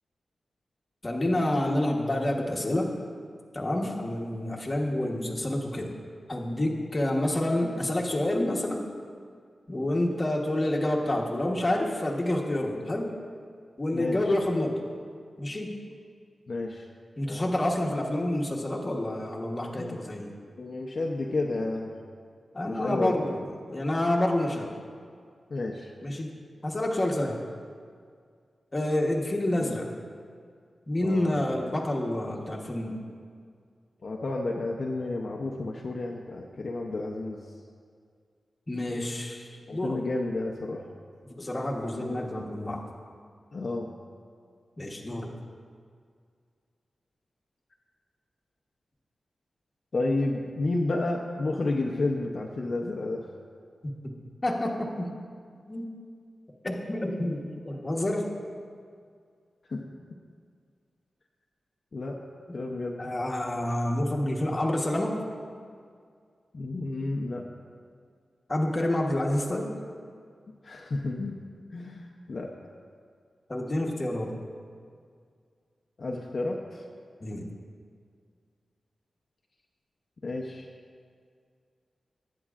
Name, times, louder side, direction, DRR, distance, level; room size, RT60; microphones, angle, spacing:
voice 1, 1.0-3.0 3.5-5.9 6.3-8.9 9.7-13.1 13.8-14.8 15.4-15.8 17.2-20.3 22.5-23.4 23.7-24.7 26.0-26.3 26.6-27.4 28.7-29.9 30.9-33.0 38.7-40.0 41.2-42.8 44.8-45.4 54.0-54.1 54.4-55.1 55.7-55.9 56.6-58.3 63.0-65.2 68.5-69.7 73.5-74.4 77.2-77.5, left 1 dB, 25° left, -1 dB, 1.1 m, -28 dB
voice 2, 13.9-14.3 16.5-16.8 17.3-17.4 19.8-20.0 20.6-21.9 22.6-23.2 25.5-25.9 29.6-29.8 31.0-31.4 34.0-37.4 39.7-40.8 43.5-43.9 49.9-53.3 59.7-59.8 61.9-62.2 62.5-63.0 66.5-67.4 70.6-71.4 71.7-72.5 76.0-76.8 80.2-80.7, left 2 dB, 45° left, 0 dB, 0.7 m, -31 dB
18.5 x 9.4 x 2.5 m, 2.1 s
wide cardioid pair, 175°, 0 cm